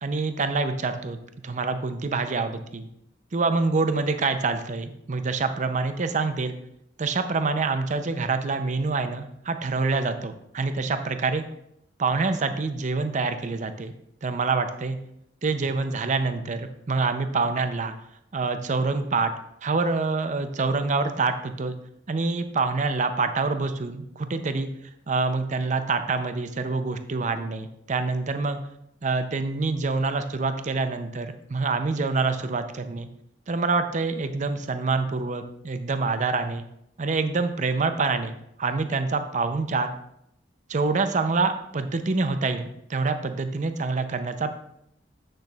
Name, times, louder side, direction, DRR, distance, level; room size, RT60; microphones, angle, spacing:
voice 1, 0.0-1.2 1.4-2.9 3.3-6.5 7.0-11.5 12.0-13.9 14.2-15.0 15.4-17.9 18.3-19.3 19.6-21.7 22.1-24.7 25.1-28.6 29.0-33.1 33.5-36.6 37.0-39.9 40.7-44.5, right 3 dB, 40° right, 9 dB, 0.5 m, -26 dB
7.8 x 6.6 x 2.4 m, 0.76 s
head